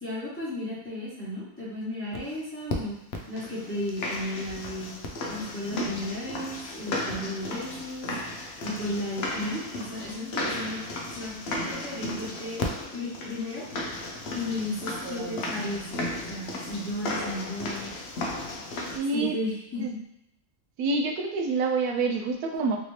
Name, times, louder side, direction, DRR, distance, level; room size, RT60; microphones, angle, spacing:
voice 1, 0.0-3.0 3.3-4.9 5.3-8.1 8.6-10.8 11.1-12.6 12.9-13.6 14.3-17.9 19.1-20.0, left 1 dB, 10° left, -9 dB, 0.9 m, -34 dB
sound 1, 2.1-2.2 2.7-2.8 3.1-19.0, left 2 dB, 65° left, 0.6 m, -34 dB
voice 2, 15.0-15.4 18.9-19.4 19.8-19.9 20.8-22.8, right 3 dB, 90° right, 3 dB, 1.1 m, -27 dB
3.3 x 2.8 x 3.1 m, 0.82 s
omnidirectional pair, 1.5 m